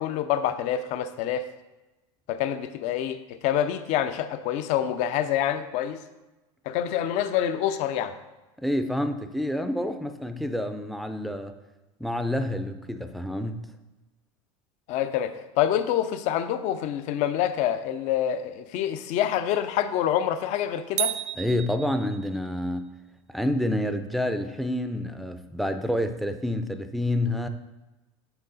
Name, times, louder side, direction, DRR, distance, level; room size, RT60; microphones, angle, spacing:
voice 1, 0.0-1.5 2.3-6.0 6.7-8.2 14.9-21.1, left 10 dB, 55° left, 11 dB, 0.6 m, -26 dB
voice 2, 8.6-11.5 12.0-13.7 21.4-22.9 23.3-27.5, left 1 dB, ahead, 8 dB, 0.4 m, -28 dB
sound 1, 21.0-22.6, right 11 dB, 55° right, 0.5 m, -32 dB
8.0 x 3.7 x 4.1 m, 1.1 s
supercardioid pair, 120°, 15 cm